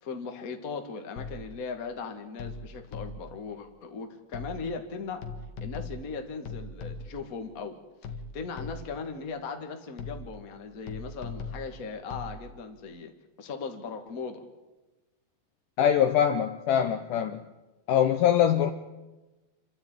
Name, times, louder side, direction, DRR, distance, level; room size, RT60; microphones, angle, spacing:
voice 1, 0.0-5.2 5.6-7.8 8.3-13.1 13.4-14.4, left 4 dB, 35° left, 5 dB, 1.6 m, -38 dB
sound 1, 1.2-1.7 2.4-3.4 4.3-4.9 5.2-7.3 8.0-9.1 10.0-10.5 10.9-12.4, left 4 dB, 55° left, 2.6 m, -40 dB
voice 2, 15.8-17.4 17.9-18.7, left 9 dB, 75° left, 8 dB, 2.1 m, -23 dB
27.0 x 13.0 x 9.1 m, 1.1 s
omnidirectional pair, 4.4 m